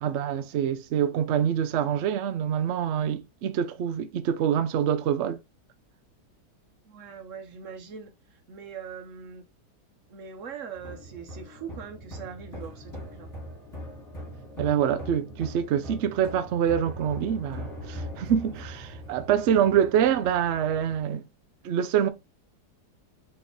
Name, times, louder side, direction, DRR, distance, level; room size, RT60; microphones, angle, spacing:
voice 1, 0.0-5.4 14.6-21.2 21.6-22.1, right 9 dB, 85° right, 0.6 m, -25 dB
voice 2, 6.8-8.1 8.5-9.4 10.1-13.3, right 7 dB, 55° right, 1.1 m, -41 dB
sound 1, 10.8-21.0, equal, 10° left, 2.4 m, -41 dB
4.1 x 3.3 x 3.6 m
omnidirectional pair, 1.8 m